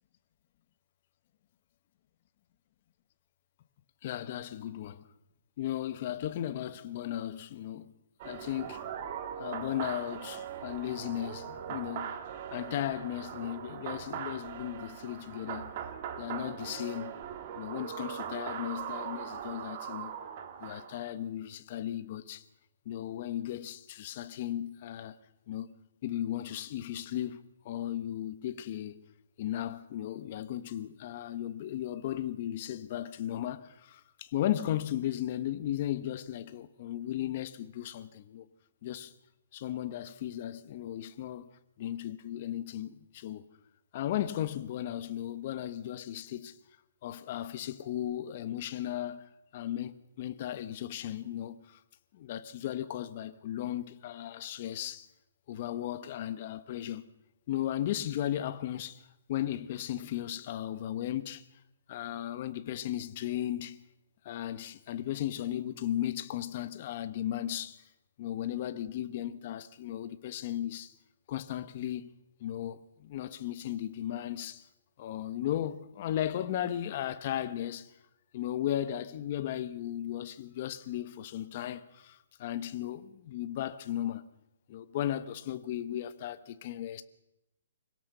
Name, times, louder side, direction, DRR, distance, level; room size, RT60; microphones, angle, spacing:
voice 1, 4.0-5.1 5.6-7.9 8.2-8.8 9.4-12.1 12.5-15.7 16.2-17.1 17.6-20.1 20.6-22.4 22.8-25.2 25.5-25.7 26.0-29.0 29.4-38.5 38.8-39.1 39.5-41.5 41.8-43.4 43.9-46.6 47.0-51.8 52.1-55.1 55.5-57.0 57.5-61.4 61.9-63.8 64.2-67.8 68.2-70.9 71.3-72.1 72.4-74.7 75.0-77.9 78.3-84.3 84.7-87.0, left 12 dB, 35° left, 1.1 m, -36 dB
sound 1, 8.2-21.1, right 8 dB, 30° right, 1.8 m, -40 dB
25.0 x 17.0 x 6.8 m
hypercardioid pair, 170°, 0 cm